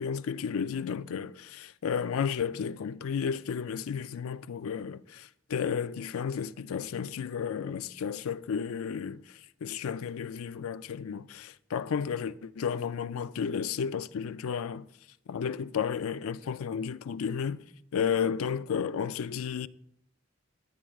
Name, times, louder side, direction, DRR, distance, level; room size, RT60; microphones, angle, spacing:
voice 1, 0.0-9.2 9.6-14.9 15.3-17.6 17.9-19.7, left 7 dB, 85° left, 0.4 m, -32 dB
15.5 x 9.0 x 2.4 m
head